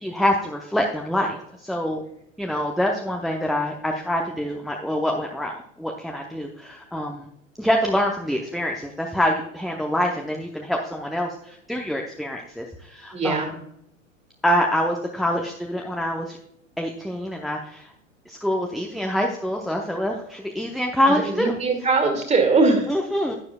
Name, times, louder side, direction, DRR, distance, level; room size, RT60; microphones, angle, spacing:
voice 1, 0.0-2.0 2.4-7.3 7.6-13.5 14.4-16.4 16.8-17.9 18.3-21.6 22.9-23.3, equal, ahead, 1 dB, 0.7 m, -25 dB
voice 2, 13.1-13.5 21.1-22.9, right 3 dB, 15° right, 4 dB, 2.2 m, -21 dB
11.5 x 9.5 x 2.2 m, 0.75 s
figure-of-eight pair, 90°, 39 cm